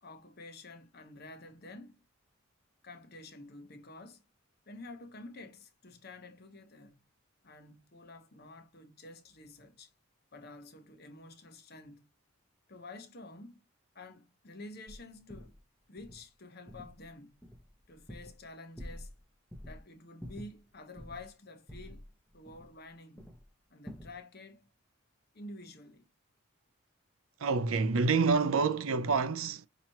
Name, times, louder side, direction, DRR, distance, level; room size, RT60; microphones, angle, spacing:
voice 1, 0.0-2.0 2.8-4.2 4.7-7.0 7.4-9.9 10.3-12.1 12.7-13.6 13.9-15.6 15.9-17.4 17.9-19.1 19.6-22.0 22.3-23.3 23.7-24.7 25.3-26.1, left 2 dB, 45° left, 1.0 m, -49 dB
sound 1, 14.9-15.0 15.3-15.6 16.0-16.2 16.7-17.1 17.4-18.5 18.8-19.2 19.5-19.8 20.2-21.3 21.7-22.9 23.2-23.5 23.9-24.2, equal, 5° left, 0.9 m, -48 dB
voice 2, 27.4-29.7, right 4 dB, 70° right, 0.5 m, -27 dB
5.8 x 2.9 x 2.9 m
head